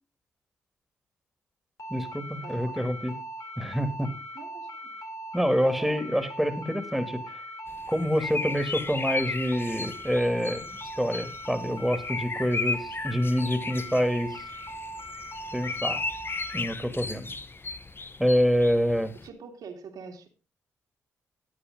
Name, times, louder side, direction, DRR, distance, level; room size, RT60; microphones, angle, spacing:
sound 1, 1.8-16.6, right 1 dB, 60° left, 3.3 m, -40 dB
voice 1, 1.9-3.2 3.6-4.1 5.3-7.2 7.9-14.4 15.5-16.0 16.5-17.3 18.2-19.1, equal, ahead, 9 dB, 2.8 m, -26 dB
voice 2, 2.4-2.7 4.3-4.7 5.6-6.0 19.2-20.3, right 5 dB, 70° right, 5 dB, 2.5 m, -44 dB
sound 2, 7.7-19.3, left 3 dB, 35° left, 1.2 m, -35 dB
14.0 x 9.7 x 3.9 m, 0.33 s
hypercardioid pair, 40°, 7 cm